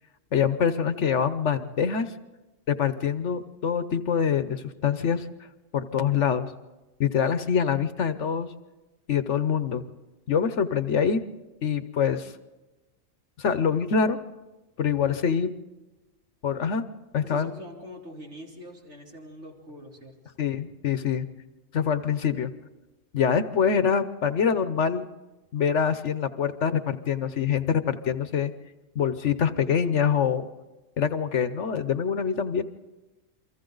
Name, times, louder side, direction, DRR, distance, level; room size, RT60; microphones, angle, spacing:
voice 1, 0.3-2.1 2.7-5.3 5.7-6.5 7.0-8.5 9.1-9.8 10.3-11.2 11.6-12.3 13.4-14.2 14.8-15.5 16.4-16.8 17.1-17.5 20.4-21.3 21.7-22.5 23.1-25.0 25.5-28.5 28.9-30.4 31.0-32.6, left 7 dB, 65° left, 11 dB, 1.2 m, -25 dB
voice 2, 17.2-20.1, equal, 65° right, -2 dB, 3.8 m, -43 dB
29.0 x 24.0 x 3.9 m, 1.1 s
omnidirectional pair, 1.3 m